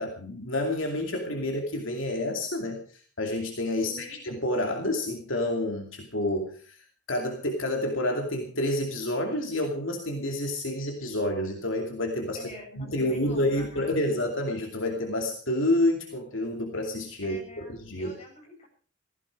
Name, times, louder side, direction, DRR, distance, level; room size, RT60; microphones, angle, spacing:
voice 1, 0.0-12.4 12.8-17.4 17.7-18.1, left 1 dB, 70° left, 2 dB, 2.7 m, -29 dB
voice 2, 3.8-4.2 12.3-14.0 17.2-18.7, left 1 dB, 30° left, 0 dB, 7.9 m, -46 dB
17.0 x 15.0 x 4.8 m, 0.43 s
head